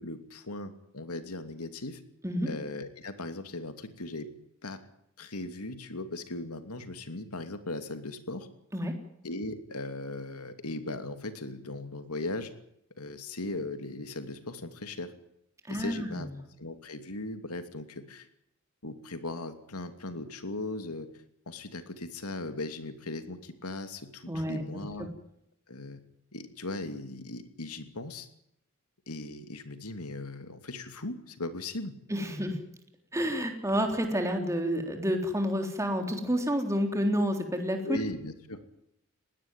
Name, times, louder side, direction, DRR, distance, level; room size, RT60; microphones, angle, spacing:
voice 1, 0.0-2.0 2.5-4.3 4.6-4.8 5.2-8.5 9.2-12.5 13.0-15.1 15.7-16.3 16.6-18.3 18.8-21.1 21.5-25.1 25.7-26.0 26.3-28.3 29.1-32.0 37.8-38.6, left 2 dB, 90° left, 9 dB, 2.8 m, -38 dB
voice 2, 15.7-16.3 24.3-24.6 32.1-32.6 33.1-38.0, equal, 15° right, 4 dB, 3.6 m, -29 dB
21.0 x 17.0 x 9.1 m, 0.78 s
head